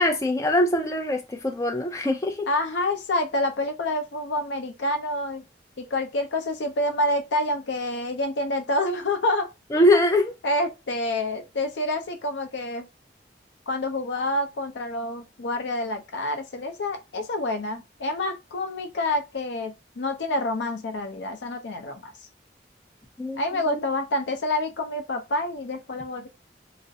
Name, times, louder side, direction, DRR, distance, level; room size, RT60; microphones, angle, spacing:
voice 1, 0.0-2.5 9.7-10.3 23.2-23.8, left 1 dB, 15° left, 0.4 m, -23 dB
voice 2, 2.5-5.4 5.8-9.5 10.4-12.9 13.7-22.1 23.4-26.3, left 1 dB, 85° left, 0.5 m, -28 dB
2.4 x 2.0 x 2.6 m
head